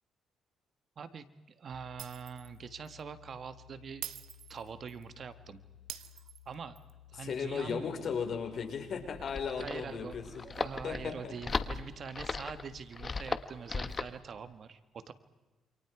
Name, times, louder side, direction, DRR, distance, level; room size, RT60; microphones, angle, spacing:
voice 1, 1.0-4.1 4.5-5.6 6.4-6.8 7.1-7.8 9.6-15.1, right 6 dB, 50° right, 11 dB, 1.5 m, -44 dB
sound 1, 1.7-12.8, left 13 dB, 75° left, 4.6 m, -57 dB
Shatter, 2.0-2.6 2.9-3.0 4.0-5.0 5.9-6.9, right 11 dB, 80° right, 1.1 m, -45 dB
voice 2, 7.2-10.4 10.8-11.3, left 6 dB, 60° left, 5 dB, 4.8 m, -36 dB
sound 2, 9.0-14.2, left 4 dB, 35° left, 1.2 m, -37 dB
28.5 x 27.0 x 4.9 m, 1.2 s
cardioid pair, 90°, 0 cm